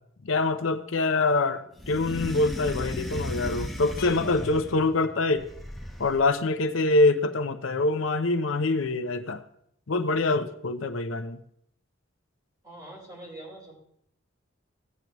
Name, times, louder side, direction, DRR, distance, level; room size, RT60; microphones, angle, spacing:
voice 1, 0.2-5.5 6.0-9.4 9.9-11.4, left 3 dB, 75° left, 0.7 m, -25 dB
voice 2, 1.0-1.8 12.6-13.8, right 1 dB, 20° right, 4.0 m, -46 dB
sound 1, 1.8-4.8 5.4-6.3, equal, ahead, 1.0 m, -36 dB
sound 2, 4.0-6.0, left 4 dB, 55° left, 1.0 m, -43 dB
16.0 x 9.3 x 3.0 m
head